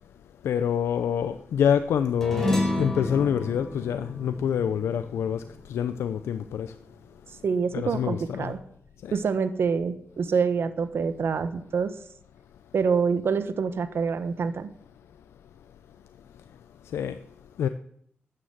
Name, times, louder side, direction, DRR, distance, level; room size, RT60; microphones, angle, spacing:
voice 1, 0.4-6.7 7.7-8.5 9.0-9.2 16.9-17.2 17.6-17.7, left 8 dB, 85° left, 0.6 m, -26 dB
sound 1, 2.2-6.9, left 1 dB, 10° left, 4.4 m, -31 dB
voice 2, 7.4-8.6 9.1-11.9 12.7-14.7, right 5 dB, 65° right, 1.3 m, -26 dB
13.0 x 9.0 x 7.4 m
cardioid pair, 70°, 4 cm